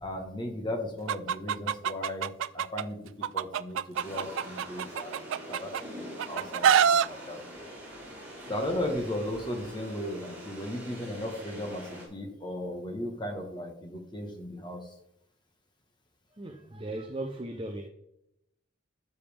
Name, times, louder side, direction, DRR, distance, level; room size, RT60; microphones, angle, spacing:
voice 1, 0.0-5.2 5.5-5.7 6.3-7.4 8.5-14.8, left 1 dB, 25° left, 1.4 m, -36 dB
Chicken rooster, 1.1-2.8 3.2-5.8 6.2-7.1, right 8 dB, 75° right, 0.3 m, -25 dB
sound 1, 3.9-12.1, equal, 10° right, 3.8 m, -44 dB
voice 2, 16.4-17.9, right 1 dB, 25° right, 0.7 m, -37 dB
12.5 x 7.0 x 3.5 m
head